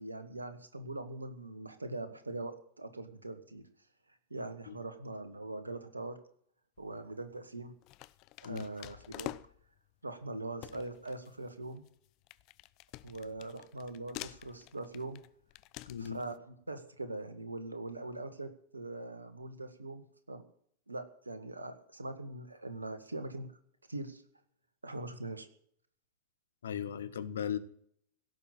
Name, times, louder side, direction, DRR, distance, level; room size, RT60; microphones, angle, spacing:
voice 1, 0.0-3.7 4.3-6.2 6.8-7.7 8.4-9.4 10.0-11.8 13.0-15.2 16.0-20.4 20.9-23.5 23.9-24.2 24.8-25.5, right 2 dB, 80° right, 1.9 m, -42 dB
sound 1, 6.8-7.1 7.8-9.8 10.2-10.3 10.6-16.4, left 19 dB, 40° left, 0.6 m, -48 dB
voice 2, 15.9-16.2 26.6-27.6, left 8 dB, 65° left, 1.3 m, -37 dB
17.0 x 7.0 x 10.0 m
figure-of-eight pair, 90°, 0 cm